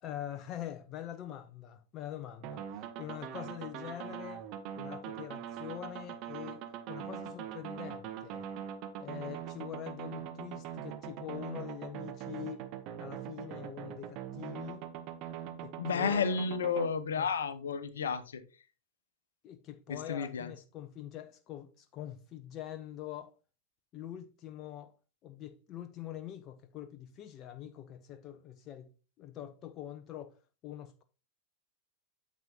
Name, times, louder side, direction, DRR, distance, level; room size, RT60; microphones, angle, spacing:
voice 1, 0.0-4.5 4.8-8.5 9.0-12.7 13.0-14.9 15.6-16.2 17.2-17.3 19.4-23.3 23.9-25.0 25.2-28.9 29.2-30.4 30.6-31.0, left 11 dB, 35° left, 0.6 m, -44 dB
sound 1, 2.4-16.9, right 9 dB, 40° right, 0.9 m, -42 dB
voice 2, 15.8-18.7 19.9-20.5, left 6 dB, 65° left, 0.9 m, -32 dB
9.0 x 7.3 x 2.8 m
figure-of-eight pair, 90°, 0 cm